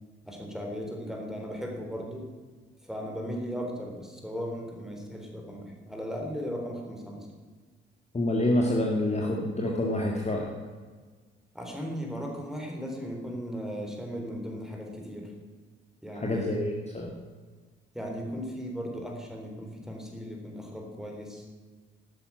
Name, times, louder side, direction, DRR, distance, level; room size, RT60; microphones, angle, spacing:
voice 1, 0.2-2.2 2.8-7.3 11.5-15.3 16.0-16.6 17.9-21.4, equal, ahead, 1 dB, 3.7 m, -37 dB
voice 2, 8.1-10.5 16.2-17.1, left 1 dB, 20° left, -1 dB, 1.9 m, -27 dB
12.0 x 8.8 x 6.2 m, 1.4 s
figure-of-eight pair, 40°, 30 cm